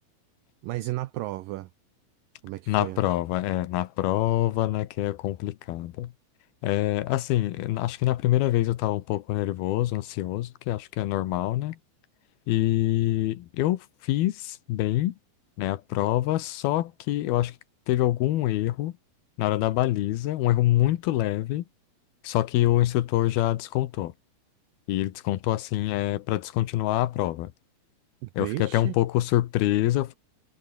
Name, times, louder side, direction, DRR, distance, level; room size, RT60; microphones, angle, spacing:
voice 1, 0.6-1.7 2.4-3.0 28.2-29.0, right 17 dB, 75° right, 2.2 m, -33 dB
voice 2, 2.7-6.1 6.6-11.8 12.5-15.2 15.6-17.6 17.9-19.0 19.4-21.6 22.2-24.1 24.9-27.5 28.4-30.2, left 15 dB, 85° left, 3.1 m, -25 dB
omnidirectional pair, 4.3 m